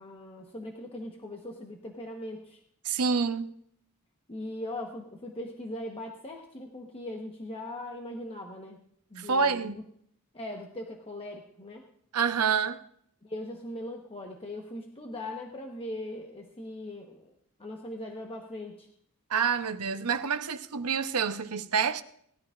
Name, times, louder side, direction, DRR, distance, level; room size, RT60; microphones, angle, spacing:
voice 1, 0.0-2.6 4.3-8.8 9.1-9.8 10.3-11.8 13.2-18.9, left 1 dB, 25° left, 1.1 m, -40 dB
voice 2, 2.8-3.5 9.2-9.8 12.1-12.8 19.3-22.0, right 6 dB, 85° right, 0.8 m, -27 dB
19.0 x 13.5 x 2.5 m
head